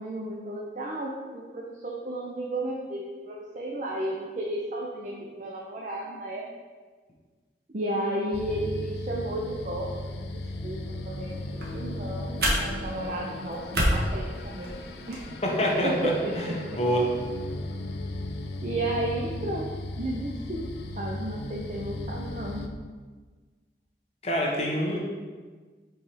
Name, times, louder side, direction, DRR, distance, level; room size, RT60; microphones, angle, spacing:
voice 1, 0.0-6.5 7.7-10.8 11.1-11.4 11.7-14.8 15.1-15.3 15.8-16.8 18.6-20.7 21.0-22.6, right 1 dB, 45° right, -2 dB, 0.6 m, -33 dB
sound 1, 8.3-22.7, left 2 dB, 70° left, 0.5 m, -37 dB
sound 2, 11.3-15.3, equal, 65° right, 1.4 m, -30 dB
voice 2, 15.4-17.1 24.2-25.0, equal, 35° left, -2 dB, 1.0 m, -26 dB
4.7 x 4.4 x 4.9 m, 1.4 s
head